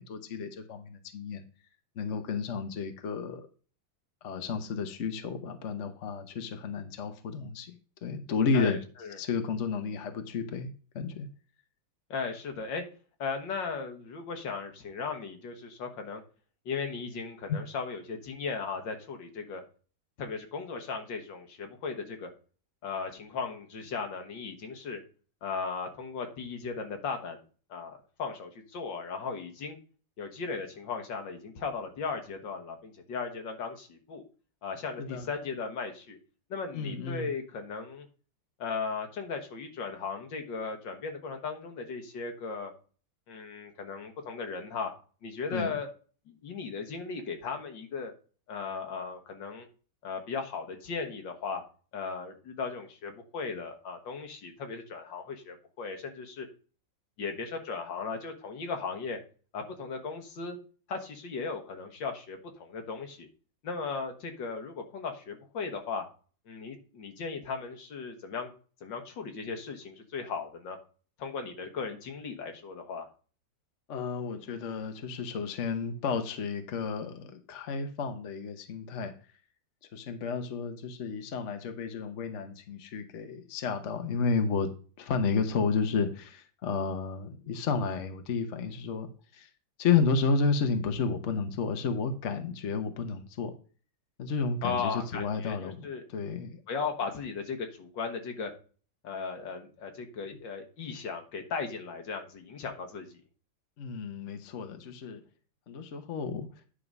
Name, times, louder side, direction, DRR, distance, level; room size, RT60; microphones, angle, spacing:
voice 1, 0.0-1.4 2.0-3.5 4.2-8.8 9.2-11.3 17.5-17.6 35.0-35.3 36.7-37.3 45.5-45.8 73.9-79.1 79.9-84.7 85.0-89.5 89.8-93.5 94.2-96.6 103.8-105.2 105.7-106.5, left 5 dB, 50° left, 7 dB, 1.0 m, -32 dB
voice 2, 8.5-9.2 12.1-12.8 13.2-16.2 16.7-19.6 20.2-22.3 22.8-25.0 25.4-27.4 27.7-29.8 30.2-34.2 34.6-36.2 36.5-38.1 38.6-42.7 43.3-44.9 45.2-45.9 46.3-48.1 48.5-49.7 50.0-51.6 51.9-56.5 57.2-59.2 59.5-60.6 60.9-63.3 63.6-66.0 66.5-68.5 68.8-70.8 71.2-73.1 94.6-96.0 96.7-98.5 99.0-103.2, left 5 dB, 70° left, 5 dB, 1.9 m, -37 dB
10.0 x 3.8 x 5.3 m, 0.38 s
omnidirectional pair, 2.1 m